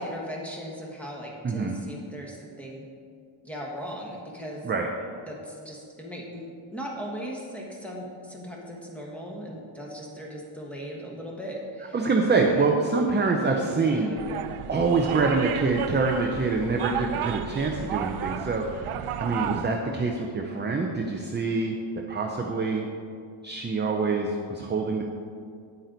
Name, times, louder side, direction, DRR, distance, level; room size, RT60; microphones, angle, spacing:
voice 1, 0.0-2.9 3.4-4.6 5.3-12.0 12.5-12.7 13.9-14.2, equal, 5° left, -3 dB, 1.4 m, -38 dB
voice 2, 11.9-14.1 14.7-18.8 19.2-21.8 22.1-22.8 23.4-25.0, right 4 dB, 20° right, 1 dB, 0.5 m, -25 dB
sound 1, 14.2-19.7, right 9 dB, 85° right, 0.6 m, -32 dB
9.6 x 8.6 x 3.9 m, 2.3 s
wide cardioid pair, 170°, 50 cm